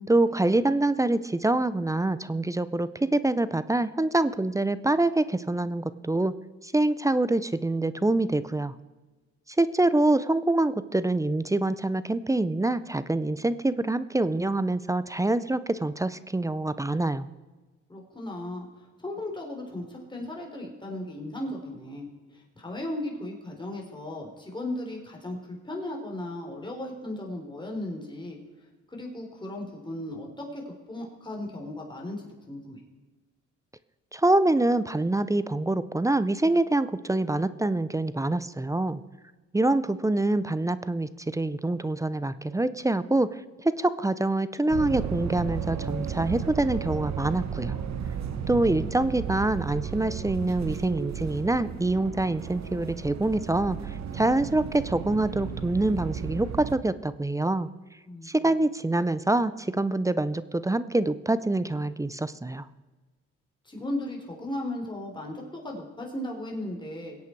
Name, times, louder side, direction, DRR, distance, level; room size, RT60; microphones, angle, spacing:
voice 1, 0.1-6.3 6.6-8.7 9.6-17.3 34.1-39.0 39.5-47.8 48.5-53.8 54.1-57.7 58.2-62.6, right 2 dB, 10° right, 15 dB, 0.5 m, -25 dB
voice 2, 17.9-28.4 28.9-32.8 48.1-48.9 58.1-58.5 63.6-67.2, left 1 dB, 15° left, 0 dB, 4.0 m, -36 dB
sound 1, 44.7-56.8, right 7 dB, 65° right, 1.2 m, -34 dB
22.0 x 8.5 x 4.7 m, 1.3 s
cardioid pair, 90°, 30 cm